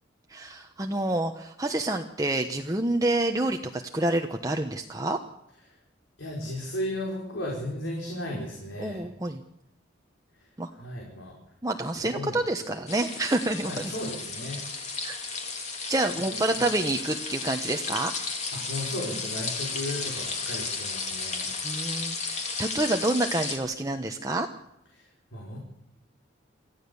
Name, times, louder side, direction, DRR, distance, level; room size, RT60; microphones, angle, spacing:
voice 1, 0.3-5.2 8.8-9.4 10.6-10.7 11.6-13.9 15.0-15.2 15.9-18.1 21.6-24.5, right 2 dB, 20° right, 4 dB, 1.0 m, -28 dB
voice 2, 6.2-9.1 10.3-11.4 11.9-12.4 13.6-14.6 16.3-16.6 18.5-21.5 24.9-25.6, left 1 dB, 75° left, -1 dB, 4.9 m, -35 dB
sound 1, 12.9-23.6, left 4 dB, 35° left, 3.2 m, -33 dB
24.5 x 15.0 x 7.0 m, 0.82 s
head